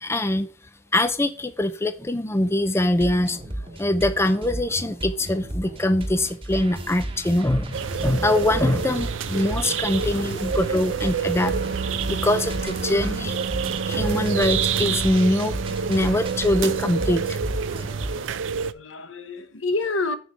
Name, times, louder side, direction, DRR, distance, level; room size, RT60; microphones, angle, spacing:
voice 1, 0.0-0.5 0.9-3.4 3.8-11.5 12.1-13.4 13.9-15.6 15.9-17.4, left 1 dB, 15° left, 0.5 m, -23 dB
sound 1, 2.8-18.3, right 1 dB, 30° right, 1.1 m, -34 dB
sound 2, 7.7-18.7, right 7 dB, 80° right, 0.5 m, -28 dB
voice 2, 9.9-10.5 12.8-13.2 16.0-16.2 18.7-20.2, left 3 dB, 85° left, 1.1 m, -30 dB
Wind instrument woodwind instrument, 11.4-17.5, right 3 dB, 50° right, 0.7 m, -34 dB
6.9 x 6.3 x 4.3 m
head